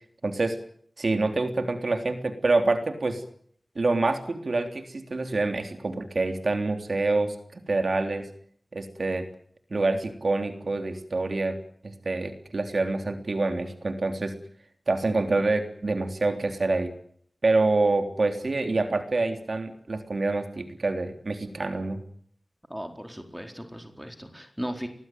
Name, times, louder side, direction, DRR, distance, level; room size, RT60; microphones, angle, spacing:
voice 1, 0.2-0.6 1.0-3.2 3.8-8.3 8.7-9.3 9.7-11.6 11.8-14.3 14.9-16.9 17.4-22.0, right 3 dB, 70° right, 6 dB, 3.5 m, -26 dB
voice 2, 22.7-24.9, equal, 5° right, 5 dB, 4.4 m, -37 dB
24.5 x 20.0 x 9.4 m, 0.63 s
wide cardioid pair, 60°, 0 cm